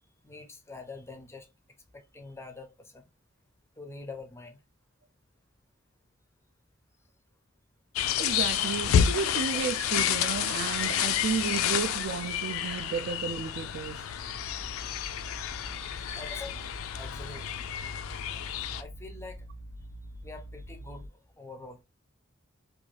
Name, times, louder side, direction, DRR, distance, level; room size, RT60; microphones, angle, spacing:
voice 1, 0.2-1.5 1.9-3.0 3.8-4.6 16.2-16.7 16.9-17.8 18.1-18.3 18.8-19.5 20.2-21.1 21.4-21.8, left 3 dB, 15° left, 0.4 m, -45 dB
sound 1, 8.0-18.8, left 9 dB, 90° left, 0.3 m, -30 dB
voice 2, 8.2-14.0, right 6 dB, 55° right, 0.3 m, -33 dB
sound 2, 14.2-21.1, right 1 dB, 75° right, 0.8 m, -45 dB
2.6 x 2.3 x 3.1 m
head